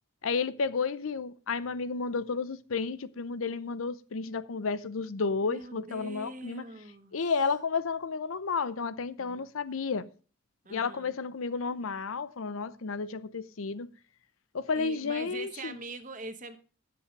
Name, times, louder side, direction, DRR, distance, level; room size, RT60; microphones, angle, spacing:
voice 1, 0.2-6.7 7.1-10.1 10.7-13.9 14.5-15.8, left 4 dB, 90° left, 0.7 m, -32 dB
voice 2, 5.4-7.2 9.2-9.5 10.6-11.1 14.7-16.6, right 2 dB, 40° right, 1.2 m, -43 dB
10.0 x 7.7 x 5.3 m
head